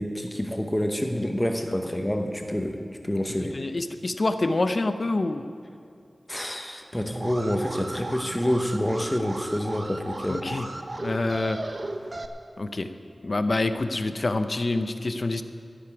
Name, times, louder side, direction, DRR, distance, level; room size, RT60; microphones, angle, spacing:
voice 1, 0.0-3.6 6.3-10.5, equal, 15° left, 4 dB, 0.9 m, -27 dB
voice 2, 3.4-5.4 10.3-10.7 11.0-11.6 12.6-12.9 13.2-15.4, left 2 dB, 50° left, 9 dB, 0.7 m, -26 dB
Alarm, 7.1-12.3, right 2 dB, 50° right, 0.8 m, -36 dB
13.0 x 7.0 x 9.7 m, 2.4 s
wide cardioid pair, 70°, 0 cm